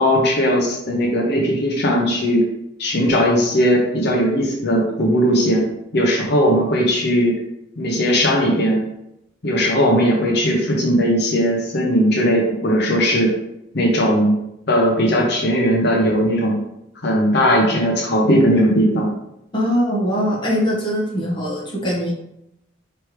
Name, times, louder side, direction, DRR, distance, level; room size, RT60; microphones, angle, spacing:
voice 1, 0.0-2.4 2.8-5.7 5.9-7.4 7.8-8.8 9.4-13.3 13.7-14.4 14.7-16.6 17.0-19.1, equal, 60° left, -2 dB, 0.8 m, -18 dB
voice 2, 19.5-22.1, equal, 25° left, -5 dB, 1.2 m, -21 dB
4.5 x 3.2 x 3.1 m, 0.82 s
head